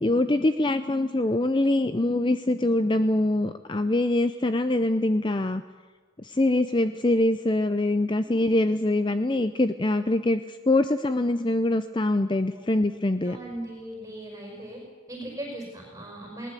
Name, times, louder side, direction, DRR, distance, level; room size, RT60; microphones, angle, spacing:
voice 1, 0.0-5.6 6.2-13.4, left 1 dB, 20° left, 10 dB, 0.6 m, -24 dB
voice 2, 8.2-8.5 12.5-12.6 13.2-14.8 15.1-16.5, right 1 dB, 15° right, -1 dB, 5.2 m, -38 dB
20.5 x 19.0 x 8.3 m, 1.5 s
head